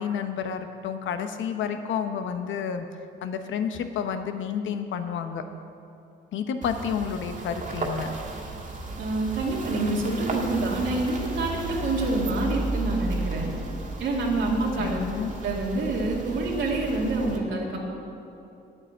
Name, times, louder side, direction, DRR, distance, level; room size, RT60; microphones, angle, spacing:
voice 1, 0.0-2.9 3.2-5.4 6.3-8.1 14.8-15.3, left 7 dB, 85° left, 8 dB, 0.9 m, -30 dB
sound 1, 6.6-17.4, right 2 dB, 40° right, 1.9 m, -34 dB
voice 2, 9.0-13.5 14.0-17.9, right 2 dB, 80° right, -2 dB, 2.1 m, -27 dB
9.0 x 8.9 x 7.9 m, 2.8 s
cardioid pair, 85°, 20 cm